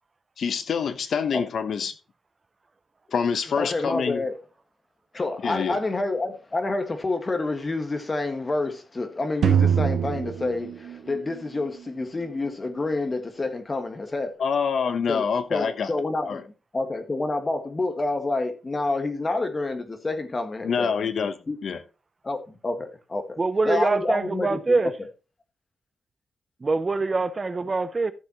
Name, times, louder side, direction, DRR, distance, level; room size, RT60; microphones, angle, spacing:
voice 1, 0.4-1.9 3.1-4.3 5.4-5.8 14.4-15.9 16.3-16.4 20.6-21.3 21.6-21.8, left 6 dB, 65° left, 1.0 m, -26 dB
voice 2, 3.6-4.4 5.1-14.4 15.1-15.2 15.5-16.4 16.7-21.1 21.5-21.6 22.2-23.4 23.7-24.8, left 2 dB, 25° left, 1.8 m, -28 dB
sound 1, 9.4-11.6, right 8 dB, 85° right, 1.1 m, -23 dB
voice 3, 23.4-24.9 26.6-28.1, right 3 dB, 25° right, 0.6 m, -24 dB
14.0 x 7.0 x 3.0 m
wide cardioid pair, 145°, 0 cm